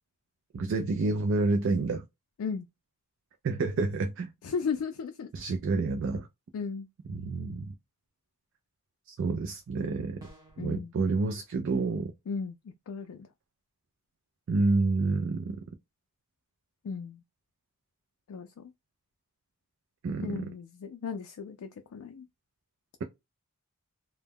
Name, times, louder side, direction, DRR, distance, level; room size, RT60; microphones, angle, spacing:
voice 1, 0.5-2.1 3.4-4.3 5.3-6.3 7.1-7.7 9.1-10.2 10.6-12.1 14.5-15.6 20.0-20.5, right 3 dB, 55° right, 0.3 m, -28 dB
voice 2, 4.4-5.3 6.5-6.9 10.6-10.9 12.3-13.3 16.8-17.2 18.3-18.7 20.2-22.3, left 5 dB, 75° left, 0.3 m, -35 dB
sound 1, 10.2-10.7, right 1 dB, 15° right, 0.8 m, -53 dB
2.2 x 2.0 x 3.3 m
head